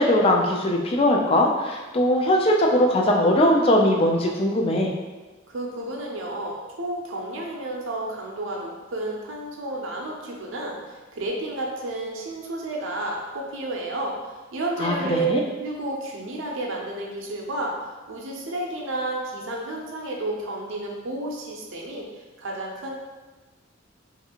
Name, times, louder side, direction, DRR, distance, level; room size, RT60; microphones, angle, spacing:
voice 1, 0.0-4.9 14.8-15.4, left 1 dB, 30° left, 0 dB, 0.3 m, -20 dB
voice 2, 5.5-14.2 14.5-15.3 15.6-17.7 18.1-22.0 22.4-22.9, right 2 dB, 70° right, -1 dB, 0.5 m, -31 dB
2.6 x 2.4 x 2.8 m, 1.2 s
head